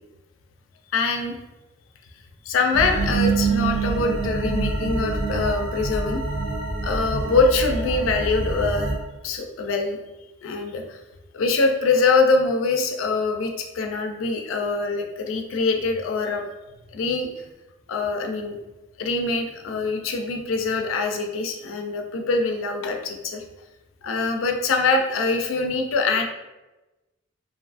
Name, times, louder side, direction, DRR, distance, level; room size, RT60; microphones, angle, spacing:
voice 1, 0.9-1.3 2.5-6.2 6.8-8.9 9.2-10.0 10.4-11.0 11.3-16.4 16.9-17.3 17.9-18.6 19.0-23.4 24.0-26.3, left 3 dB, 75° left, 4 dB, 0.4 m, -24 dB
sound 1, 2.7-9.0, right 3 dB, 75° right, 0.6 m, -25 dB
2.6 x 2.4 x 2.4 m, 1.0 s
head